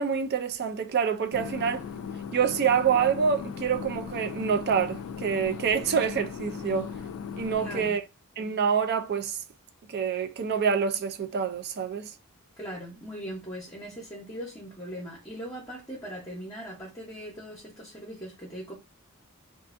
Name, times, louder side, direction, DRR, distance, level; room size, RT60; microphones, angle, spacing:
voice 1, 0.0-1.9 2.3-6.9 7.4-8.0 8.4-9.4 9.9-12.1, right 6 dB, 45° right, 0.4 m, -26 dB
sound 1, 1.3-7.9, left 6 dB, 70° left, 0.3 m, -38 dB
voice 2, 7.6-8.0 12.6-18.7, equal, 15° left, 0.8 m, -40 dB
2.5 x 2.4 x 2.4 m
head